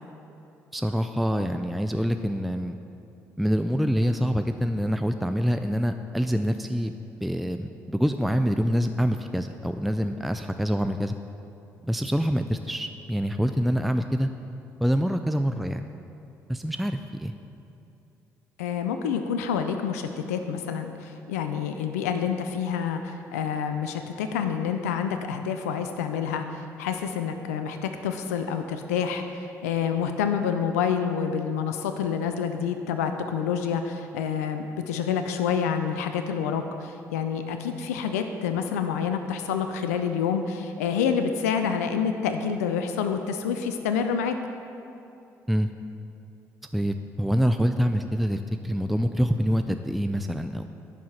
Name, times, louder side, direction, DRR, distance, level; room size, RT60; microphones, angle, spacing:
voice 1, 0.7-2.8 3.4-6.9 7.2-11.2 11.9-14.3 14.8-15.9 16.5-17.3 45.5-45.7 46.7-50.7, equal, ahead, 7 dB, 0.4 m, -26 dB
voice 2, 18.6-44.4, left 7 dB, 90° left, 7 dB, 0.4 m, -28 dB
10.5 x 4.9 x 5.6 m, 2.7 s
hypercardioid pair, 50°, 8 cm